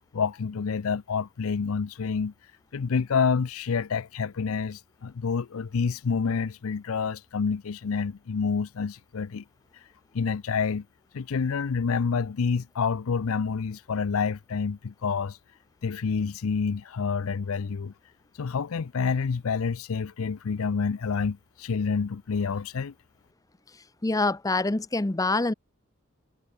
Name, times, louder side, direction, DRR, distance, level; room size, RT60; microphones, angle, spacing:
voice 1, 0.0-2.3 2.7-9.4 10.1-10.8 11.1-15.4 15.8-17.9 18.4-22.9, left 5 dB, 65° left, 0.5 m, -28 dB
voice 2, 24.0-25.5, left 2 dB, 15° left, 0.6 m, -25 dB
head